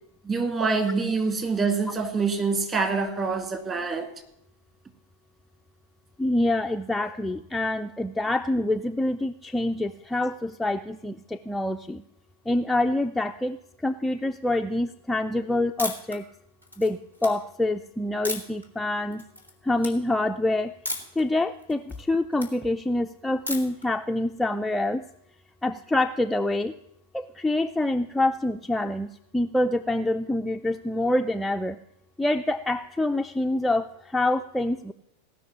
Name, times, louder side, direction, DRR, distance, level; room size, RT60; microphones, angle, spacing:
voice 1, 0.2-4.1, right 4 dB, 20° right, 7 dB, 2.2 m, -25 dB
voice 2, 6.2-12.0 12.5-16.3 16.8-19.2 19.6-20.7 21.2-25.0 25.6-26.7 27.1-31.8 32.2-34.9, left 2 dB, 5° left, 5 dB, 0.4 m, -26 dB
sound 1, 15.8-16.2 16.6-17.3 18.2-18.6 19.1-19.5 19.8-19.9 20.8-21.2 21.6-22.5 23.5-23.8, left 1 dB, 85° right, 2.1 m, -33 dB
17.5 x 6.1 x 8.7 m, 0.79 s
figure-of-eight pair, 90°, 0 cm